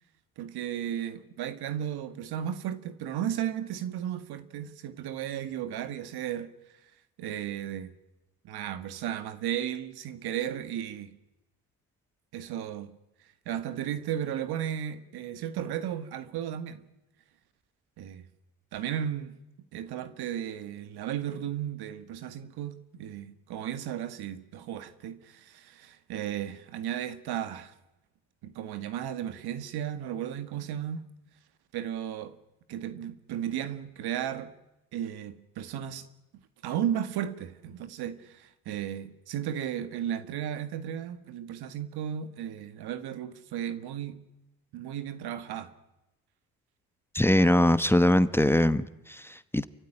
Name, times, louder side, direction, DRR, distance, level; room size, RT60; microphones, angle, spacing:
voice 1, 0.4-6.5 7.2-8.0 8.4-11.2 12.3-13.0 13.5-16.8 18.0-18.2 18.7-19.4 19.7-27.7 28.4-31.1 31.7-32.4 32.7-34.5 34.9-36.1 36.6-44.2 44.7-45.7, right 10 dB, 75° right, 1.8 m, -34 dB
voice 2, 47.1-49.7, left 1 dB, 5° left, 1.1 m, -22 dB
28.5 x 15.0 x 10.0 m
cardioid pair, 80°, 38 cm